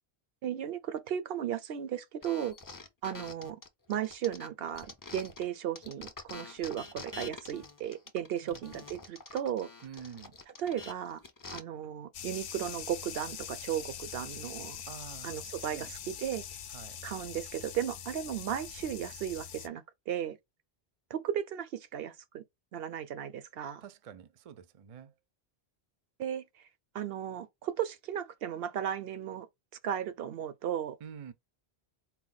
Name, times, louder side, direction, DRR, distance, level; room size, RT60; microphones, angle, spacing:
voice 1, 0.4-2.6 3.0-3.6 3.9-9.7 10.6-11.2 11.5-14.8 15.2-16.4 17.0-20.4 21.1-22.4 22.7-23.8 26.2-26.6 26.9-29.5 29.8-31.0, right 10 dB, 70° right, 0.8 m, -35 dB
sound 1, 2.2-5.5 5.8-11.6, left 3 dB, 25° left, 0.5 m, -47 dB
voice 2, 9.8-10.4 14.9-15.4 15.7-15.9 16.7-17.0 23.8-25.1 31.0-31.3, right 8 dB, 50° right, 0.5 m, -47 dB
sound 2, 12.1-19.7, left 9 dB, 70° left, 0.7 m, -43 dB
4.2 x 2.3 x 3.8 m
omnidirectional pair, 1.1 m